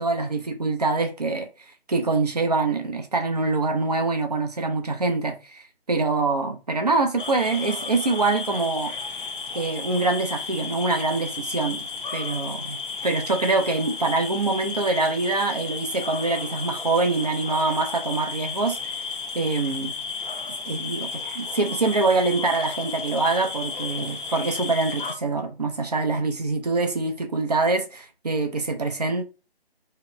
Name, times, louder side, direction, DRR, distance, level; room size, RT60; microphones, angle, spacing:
voice 1, 0.0-1.5 1.9-5.6 5.9-8.9 9.5-18.9 19.3-20.0 20.7-21.1 21.4-29.2, right 3 dB, 40° right, 0.4 m, -25 dB
sound 1, 7.2-25.1, left 5 dB, 55° left, 0.5 m, -33 dB
2.8 x 2.0 x 2.9 m
figure-of-eight pair, 145°, 31 cm